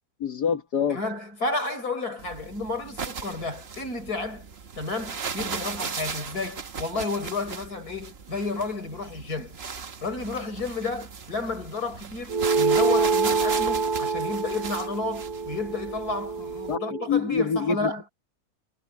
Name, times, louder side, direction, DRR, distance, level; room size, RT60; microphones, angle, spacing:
voice 1, 0.2-1.0 16.7-16.8 17.1-18.1, left 6 dB, 90° left, 2.2 m, -25 dB
voice 2, 0.9-4.5 4.8-9.6 10.0-18.0, left 3 dB, 70° left, 5.5 m, -31 dB
sound 1, 2.2-16.7, right 5 dB, 45° right, 1.2 m, -37 dB
sound 2, 12.3-17.1, right 4 dB, 85° right, 1.8 m, -26 dB
omnidirectional pair, 1.7 m